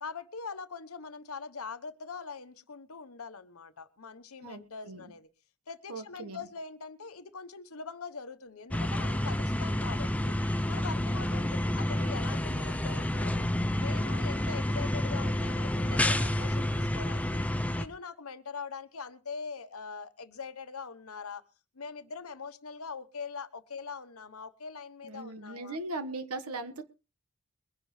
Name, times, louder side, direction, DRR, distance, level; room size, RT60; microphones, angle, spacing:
voice 1, 0.0-5.3 5.7-10.4 10.7-13.5 13.8-17.4 17.8-21.4 21.7-25.8, left 5 dB, 75° left, 11 dB, 1.1 m, -42 dB
voice 2, 4.4-5.1 5.9-6.5 25.0-26.8, right 2 dB, 85° right, 9 dB, 1.6 m, -39 dB
sound 1, 8.7-17.9, left 1 dB, 5° left, 0.6 m, -29 dB
22.5 x 10.5 x 3.3 m, 0.32 s
head